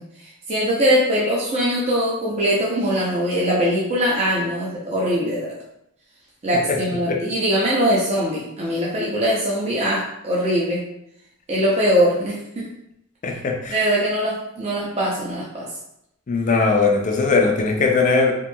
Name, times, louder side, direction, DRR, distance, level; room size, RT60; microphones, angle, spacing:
voice 1, 0.5-5.5 6.4-10.8 11.5-12.7 13.7-15.7, equal, 30° right, -6 dB, 0.5 m, -21 dB
voice 2, 13.2-13.8 16.3-18.3, left 4 dB, 35° left, 2 dB, 0.4 m, -19 dB
2.9 x 2.7 x 2.2 m, 0.80 s
head